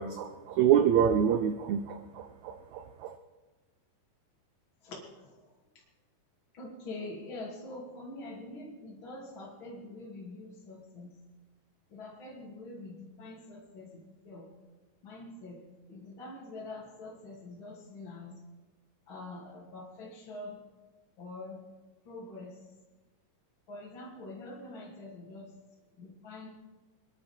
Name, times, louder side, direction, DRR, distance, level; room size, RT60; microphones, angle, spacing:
voice 1, 0.0-3.1, right 9 dB, 75° right, 8 dB, 1.8 m, -27 dB
voice 2, 6.5-11.1 11.9-14.5 15.0-15.6 15.9-18.3 19.1-20.6 21.2-21.6 22.0-22.6 23.7-25.5 26.0-26.5, left 2 dB, 40° left, -5 dB, 3.1 m, -45 dB
26.5 x 10.5 x 4.4 m, 1.2 s
omnidirectional pair, 3.9 m